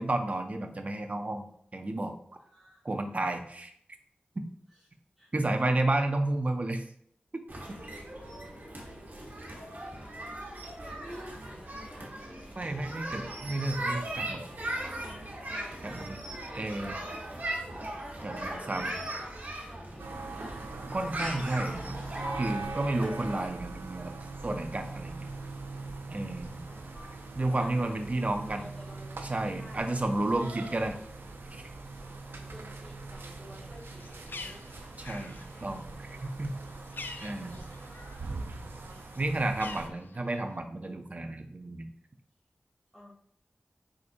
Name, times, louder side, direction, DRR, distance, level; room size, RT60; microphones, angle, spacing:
voice 1, 0.0-1.5 1.7-2.1 2.8-3.7 5.3-6.8 7.3-7.4 12.6-14.4 15.8-16.2 16.5-17.0 18.2-18.9 20.9-22.0 22.4-24.1 24.4-25.3 26.1-26.6 27.4-28.7 29.2-31.0 31.5-31.6 35.1-36.5 37.2-37.6 39.2-41.9, right 2 dB, 40° right, 6 dB, 0.6 m, -31 dB
voice 2, 2.4-3.4 4.7-4.8 5.2-5.3 7.9-8.8 9.1-9.4 9.9-10.3 10.8-12.8 18.3-19.4 19.7-20.1 26.6-28.0 28.5-29.9 31.9-34.6 36.0-36.4 42.9-43.1, equal, ahead, -10 dB, 1.7 m, -52 dB
sound 1, 7.5-23.5, right 1 dB, 60° right, 1.2 m, -39 dB
sound 2, 20.0-39.9, right 3 dB, 90° right, 0.5 m, -42 dB
Bird, 33.7-38.3 38.6-40.6, left 3 dB, 70° left, 0.4 m, -46 dB
4.9 x 4.0 x 2.6 m, 0.65 s
wide cardioid pair, 65°, 4 cm